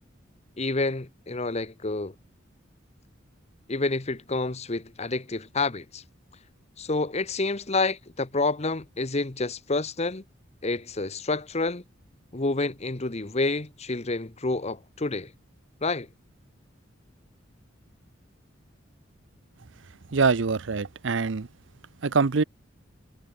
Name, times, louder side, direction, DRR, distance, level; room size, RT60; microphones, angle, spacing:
voice 1, 0.6-2.1 3.7-6.0 6.8-10.2 10.6-11.8 12.3-15.3 15.8-16.1, left 3 dB, 35° left, 1.1 m, -28 dB
voice 2, 20.1-21.5 22.0-22.4, right 4 dB, 65° right, 0.7 m, -24 dB
head